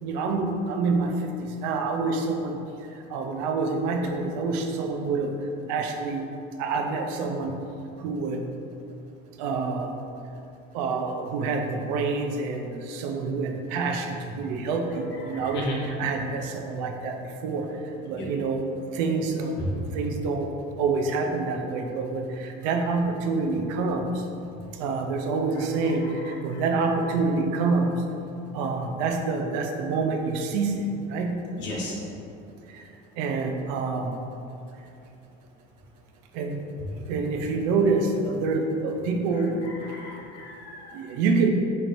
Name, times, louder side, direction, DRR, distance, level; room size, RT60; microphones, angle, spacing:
voice 1, 0.0-1.3 1.6-2.6 3.1-5.4 5.7-6.3 6.6-7.6 8.0-8.5 9.4-9.9 10.7-17.7 18.0-18.6 18.9-19.6 19.9-20.5 20.8-24.1 24.8-28.0 28.5-31.4 32.7-32.8 33.2-34.1 36.3-36.6 37.1-39.7 40.9-41.5, right 4 dB, 85° right, 4 dB, 0.5 m, -27 dB
voice 2, 15.3-15.8 16.1-16.2 18.1-18.2 19.6-19.7 26.5-26.6 31.6-32.0 39.8-41.0, left 1 dB, 60° left, -3 dB, 1.1 m, -35 dB
4.5 x 4.4 x 2.6 m, 2.7 s
supercardioid pair, 110°, 21 cm